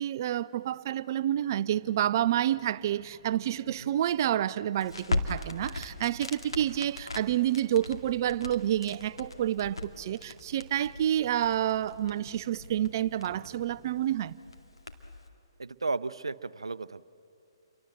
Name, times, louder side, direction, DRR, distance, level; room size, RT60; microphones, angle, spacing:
voice 1, 0.0-14.3, right 11 dB, 45° right, 0.5 m, -29 dB
sound 1, 1.7-13.9, equal, 20° left, 6.0 m, -60 dB
Crackle, 4.7-15.3, left 2 dB, 85° left, 2.3 m, -39 dB
voice 2, 15.6-17.0, right 3 dB, 85° right, 0.6 m, -34 dB
29.0 x 24.0 x 7.9 m
figure-of-eight pair, 135°, 3 cm